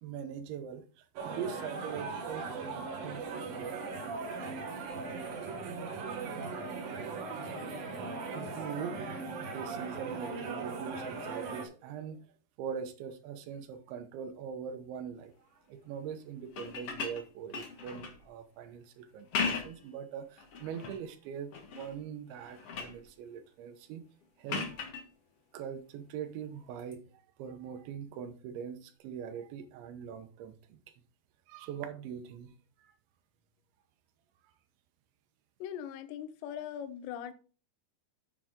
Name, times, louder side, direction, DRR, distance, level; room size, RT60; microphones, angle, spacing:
voice 1, 0.0-2.5 2.9-3.5 8.2-9.1 9.4-12.3 12.6-24.0 24.4-24.9 25.5-30.8 31.5-32.5 32.8-32.9, right 8 dB, 85° right, 3.4 m, -42 dB
sound 1, 1.2-11.7, right 4 dB, 60° right, 3.0 m, -39 dB
sound 2, 16.4-18.2 19.1-19.9 20.4-21.0 21.5-22.0 22.3-23.0 24.5-25.0 26.8-26.9, left 5 dB, 60° left, 1.6 m, -37 dB
voice 2, 35.6-37.3, left 9 dB, 80° left, 3.0 m, -40 dB
9.6 x 7.5 x 3.7 m
omnidirectional pair, 5.2 m